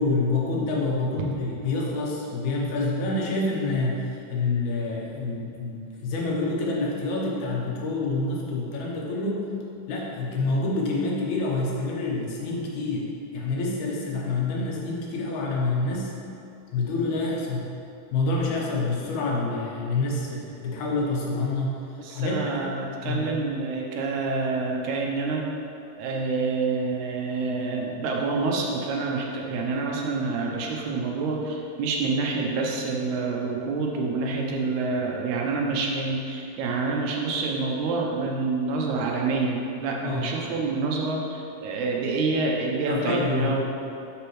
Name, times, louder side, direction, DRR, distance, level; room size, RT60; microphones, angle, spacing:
voice 1, 0.0-4.0 4.3-9.4 9.9-13.0 13.3-16.1 16.7-17.6 18.1-21.7 22.1-22.6 23.0-23.2 40.0-40.3 42.9-43.6, left 3 dB, 70° left, -3 dB, 2.3 m, -27 dB
voice 2, 22.0-25.5 26.0-43.7, right 3 dB, 75° right, -1 dB, 1.9 m, -27 dB
6.9 x 6.6 x 3.1 m, 2.7 s
omnidirectional pair, 3.7 m